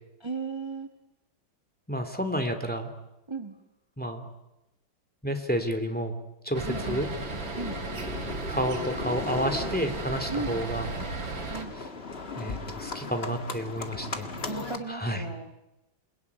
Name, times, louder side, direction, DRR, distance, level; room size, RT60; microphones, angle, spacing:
voice 1, 0.2-0.9 3.3-3.5 6.6-7.0 7.5-7.8 10.3-10.6 11.5-11.7 14.5-15.5, right 4 dB, 15° right, 6 dB, 1.5 m, -35 dB
voice 2, 1.9-2.9 4.0-4.3 5.2-6.2 6.4-7.1 8.5-10.9 12.4-14.3 14.9-15.2, equal, 5° left, 6 dB, 2.4 m, -30 dB
sound 1, 6.5-11.6, right 3 dB, 75° right, 3.4 m, -35 dB
Livestock farm animals working animals, 6.7-14.8, left 4 dB, 35° left, 1.9 m, -38 dB
28.5 x 22.0 x 9.5 m, 0.92 s
omnidirectional pair, 2.1 m